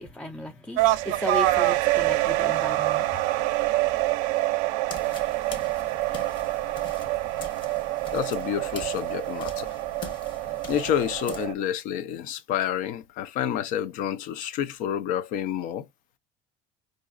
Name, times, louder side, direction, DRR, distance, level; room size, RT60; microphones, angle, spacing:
voice 1, 0.0-3.1, left 1 dB, 5° left, 0.4 m, -35 dB
sound 1, 0.8-11.5, right 17 dB, 75° right, 0.5 m, -26 dB
sound 2, 4.9-11.5, left 4 dB, 35° left, 1.0 m, -43 dB
voice 2, 8.1-9.7 10.7-15.9, left 10 dB, 65° left, 0.6 m, -29 dB
4.8 x 2.6 x 2.5 m
cardioid pair, 150°, 14 cm